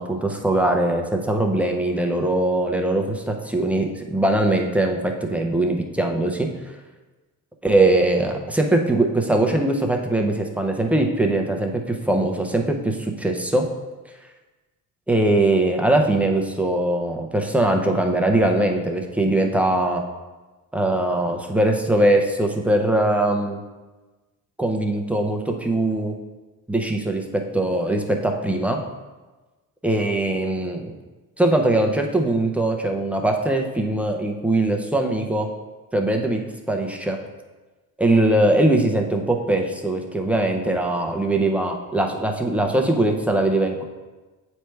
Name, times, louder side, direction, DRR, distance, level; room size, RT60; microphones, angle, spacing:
voice 1, 0.0-6.5 7.6-13.7 15.1-20.0 20.7-23.6 24.6-26.1 26.7-27.2 27.5-28.8 29.8-30.9 31.4-35.5 35.9-36.4 36.7-37.2 38.0-43.8, right 1 dB, 5° right, 2 dB, 0.5 m, -21 dB
7.9 x 3.2 x 4.5 m, 1.2 s
cardioid pair, 140°, 34 cm